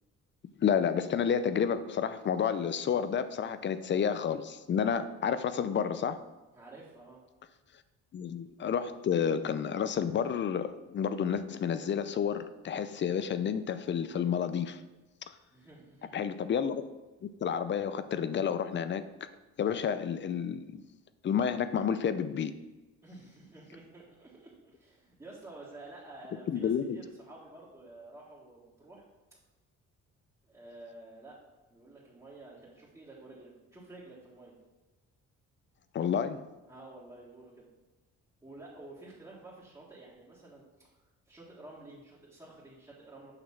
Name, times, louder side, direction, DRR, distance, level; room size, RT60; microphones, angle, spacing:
voice 1, 0.6-6.2 8.1-14.8 16.1-16.9 17.2-19.1 19.6-20.8 21.2-22.6 26.5-27.0 35.9-36.4, left 7 dB, 40° left, 12 dB, 0.5 m, -30 dB
voice 2, 6.5-7.2 15.5-16.2 23.0-29.0 30.4-31.4 31.7-34.6 36.7-37.7 38.4-41.0 41.3-43.3, right 2 dB, 10° right, -8 dB, 1.6 m, -51 dB
6.6 x 3.1 x 5.7 m, 1.1 s
cardioid pair, 90°, 30 cm